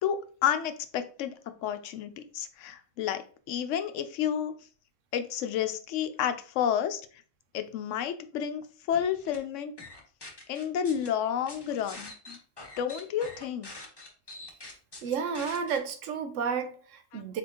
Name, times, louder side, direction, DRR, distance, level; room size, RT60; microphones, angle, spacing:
voice 1, 0.0-1.3 1.6-3.2 3.5-4.5 5.1-7.0 7.5-9.7 10.5-12.4 12.8-13.7 17.1-17.2, left 9 dB, 75° left, 0.9 m, -30 dB
sound 1, 8.9-9.4 9.8-11.1 11.5-15.8, left 2 dB, 20° left, 0.9 m, -45 dB
voice 2, 15.0-17.4, right 6 dB, 75° right, 1.0 m, -32 dB
4.3 x 4.2 x 2.9 m
omnidirectional pair, 1.3 m